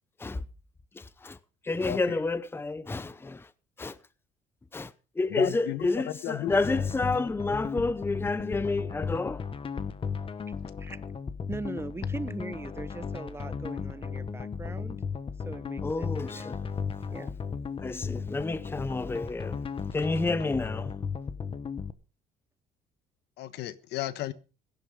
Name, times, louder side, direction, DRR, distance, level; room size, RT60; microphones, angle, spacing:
voice 1, 1.0-1.4 1.6-3.5 3.8-4.0 4.7-9.5 15.8-16.6 17.8-19.6 19.9-20.9, left 3 dB, 15° left, 0.8 m, -30 dB
voice 2, 1.9-2.2 5.3-6.8 23.4-24.3, left 13 dB, 80° left, 1.3 m, -34 dB
sound 1, 6.5-21.9, left 6 dB, 30° left, 1.2 m, -35 dB
voice 3, 11.5-15.0 15.5-16.5 17.1-17.3, right 3 dB, 15° right, 1.1 m, -40 dB
17.0 x 11.0 x 5.3 m
cardioid pair, 110°, 17 cm